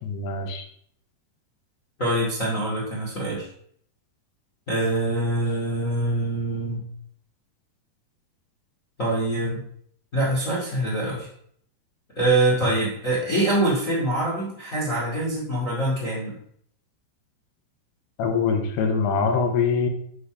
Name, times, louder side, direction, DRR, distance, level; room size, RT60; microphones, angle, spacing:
voice 1, 0.0-0.6 18.2-19.9, left 5 dB, 80° left, 4 dB, 3.0 m, -23 dB
voice 2, 2.0-3.5 4.7-6.8 9.0-9.6 10.1-11.3 12.1-16.4, right 1 dB, 30° left, -6 dB, 1.7 m, -24 dB
9.9 x 4.2 x 4.9 m, 0.66 s
omnidirectional pair, 4.7 m